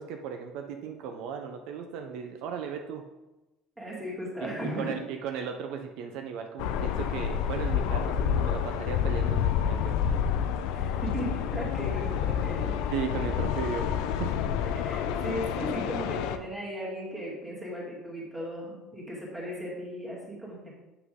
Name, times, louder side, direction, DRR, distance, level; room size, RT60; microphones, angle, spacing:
voice 1, 0.0-3.0 4.4-10.0 12.9-14.4, right 7 dB, 60° right, 4 dB, 0.6 m, -36 dB
voice 2, 3.8-5.0 10.7-12.8 14.7-20.7, right 1 dB, 5° right, -5 dB, 1.9 m, -36 dB
sound 1, 6.6-16.4, left 8 dB, 70° left, 0.5 m, -28 dB
8.0 x 5.8 x 3.7 m, 1.0 s
cardioid pair, 175°, 0 cm